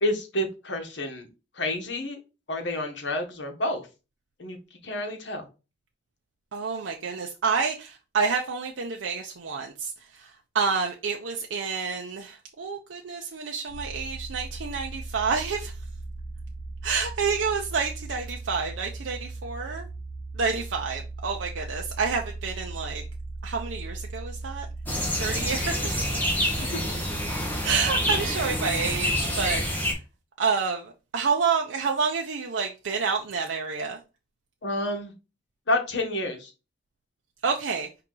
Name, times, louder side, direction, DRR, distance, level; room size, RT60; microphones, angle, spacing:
voice 1, 0.0-1.3 1.6-2.2 2.5-3.8 4.4-4.6 4.8-5.5 34.6-35.1 35.7-36.5, left 1 dB, 70° left, 1.1 m, -29 dB
voice 2, 6.5-10.3 10.5-15.7 16.8-19.8 20.4-23.0 23.4-24.7 25.2-26.0 27.6-29.8 30.4-34.0 37.4-37.9, right 5 dB, 85° right, 0.6 m, -28 dB
sound 1, 13.7-29.7, right 2 dB, 15° right, 1.4 m, -38 dB
sound 2, 24.9-29.9, equal, 10° left, 1.1 m, -27 dB
4.8 x 2.8 x 3.7 m
head